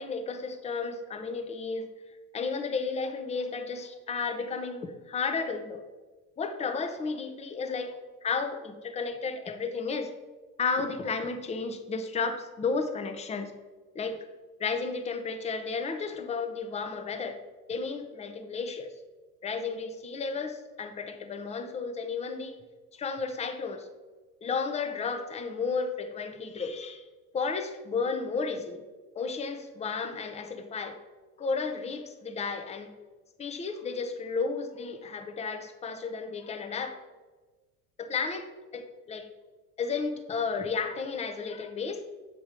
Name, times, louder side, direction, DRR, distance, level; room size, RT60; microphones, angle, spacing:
voice 1, 0.0-1.9 2.3-5.8 6.4-10.1 10.6-13.5 13.9-14.2 14.6-17.4 17.7-18.9 19.4-22.6 22.9-23.9 24.4-27.1 27.3-28.8 29.2-31.0 31.4-33.0 33.4-37.0 38.0-38.5 38.7-39.3 39.8-42.0, left 4 dB, 15° left, 7 dB, 0.5 m, -33 dB
7.4 x 3.0 x 4.9 m, 1.3 s
hypercardioid pair, 75°, 48 cm